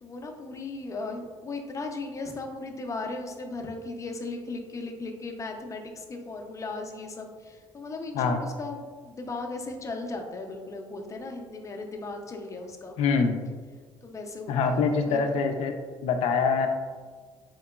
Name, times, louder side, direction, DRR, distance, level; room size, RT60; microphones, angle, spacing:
voice 1, 0.0-13.0 14.0-15.2, left 3 dB, 30° left, 2 dB, 0.6 m, -37 dB
voice 2, 13.0-13.4 14.5-15.7 16.0-16.7, left 5 dB, 80° left, 6 dB, 0.4 m, -24 dB
4.4 x 2.8 x 2.3 m, 1.5 s
supercardioid pair, 85°, 10 cm